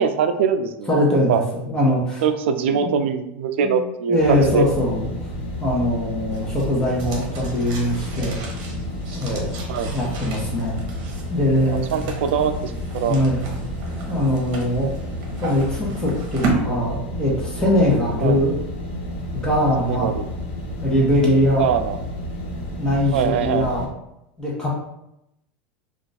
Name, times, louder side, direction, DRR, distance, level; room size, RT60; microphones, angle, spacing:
voice 1, 0.0-0.9 1.3-1.4 2.2-4.7 9.7-9.9 11.7-13.2 18.2-18.4 19.8-20.2 21.6-22.0 23.1-23.7, right 7 dB, 90° right, 9 dB, 0.4 m, -22 dB
voice 2, 0.9-2.2 2.7-3.0 3.6-3.8 4.1-5.1 5.6-8.4 9.1-9.5 9.9-10.8 11.3-11.8 13.1-13.5 14.1-14.9 15.4-18.5 19.3-20.2 20.8-21.7 22.8-23.9 24.4-24.7, left 1 dB, 10° left, -4 dB, 0.8 m, -21 dB
sound 1, 4.2-23.9, left 1 dB, 70° left, 0.9 m, -31 dB
sound 2, 6.3-16.5, right 3 dB, 55° right, 0.9 m, -34 dB
2.4 x 2.4 x 3.9 m, 0.84 s
supercardioid pair, 145°, 6 cm